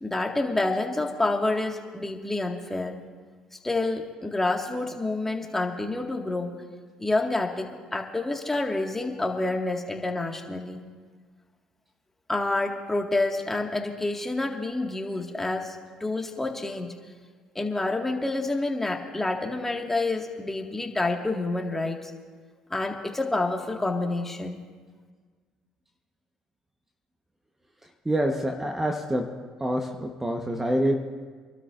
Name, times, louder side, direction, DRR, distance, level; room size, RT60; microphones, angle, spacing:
voice 1, 0.0-3.0 3.6-6.5 7.0-10.9 12.3-16.9 17.6-22.1 22.7-24.6, left 2 dB, 15° left, 2 dB, 1.8 m, -28 dB
voice 2, 28.0-29.3 29.6-31.0, right 1 dB, 15° right, 3 dB, 1.1 m, -26 dB
28.0 x 12.5 x 2.6 m, 1.5 s
supercardioid pair, 70°, 2 cm